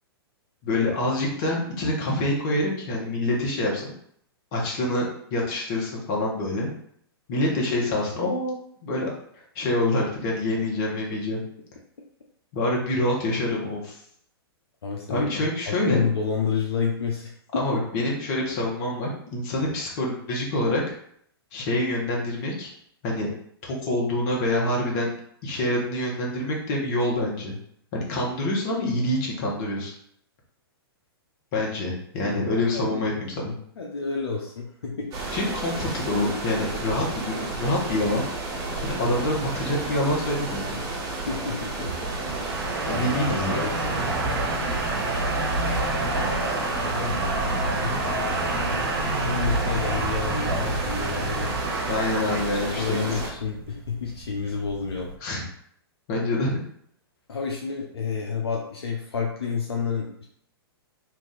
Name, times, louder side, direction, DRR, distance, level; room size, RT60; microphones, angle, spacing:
voice 1, 0.6-3.9 4.5-6.7 7.3-9.1 9.5-11.4 12.5-14.0 15.1-16.0 17.5-20.8 21.5-22.7 23.0-23.3 23.6-25.1 25.4-27.6 27.9-29.9 31.5-33.6 35.3-38.2 38.8-40.8 42.9-43.6 51.9-53.0 55.2-55.4 56.1-56.6, left 1 dB, 45° left, -2 dB, 1.2 m, -26 dB
voice 2, 14.8-17.3 32.2-32.4 32.7-33.0 33.8-35.4 41.3-41.9 42.8-44.1 46.9-51.5 52.5-55.1 57.3-60.3, left 5 dB, 75° left, -1 dB, 0.7 m, -30 dB
sound 1, 35.1-53.3, right 3 dB, 30° right, 0.9 m, -32 dB
sound 2, 38.6-55.2, right 2 dB, 65° right, 0.8 m, -29 dB
2.9 x 2.6 x 3.7 m, 0.67 s
hypercardioid pair, 115°, 13 cm